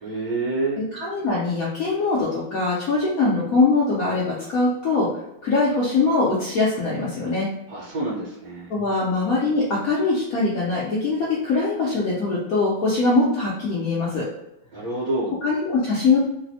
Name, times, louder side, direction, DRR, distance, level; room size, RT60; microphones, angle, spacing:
voice 1, 0.0-0.8 7.7-8.7 14.7-15.4, right 2 dB, 65° right, -8 dB, 1.2 m, -27 dB
voice 2, 0.9-5.1 5.4-7.5 8.7-14.2 15.4-16.2, left 3 dB, 70° left, -6 dB, 0.8 m, -22 dB
3.2 x 2.1 x 2.7 m, 0.87 s
omnidirectional pair, 2.2 m